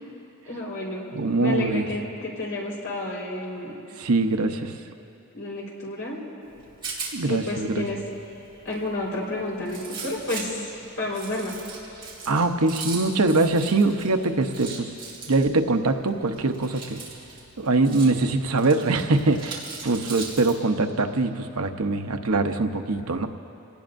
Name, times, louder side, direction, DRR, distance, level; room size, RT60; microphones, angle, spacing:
voice 1, 0.4-1.1 1.4-3.8 5.3-6.2 7.3-8.0 8.6-10.7 10.9-11.5, left 2 dB, 65° left, -5 dB, 4.4 m, -30 dB
voice 2, 1.1-1.9 4.0-4.7 7.1-7.9 12.3-14.9 15.3-17.0 17.6-23.3, right 3 dB, 85° right, 6 dB, 0.9 m, -23 dB
Rattle, 6.4-20.6, right 4 dB, 25° right, 3.3 m, -40 dB
27.0 x 18.5 x 2.6 m, 2.8 s
head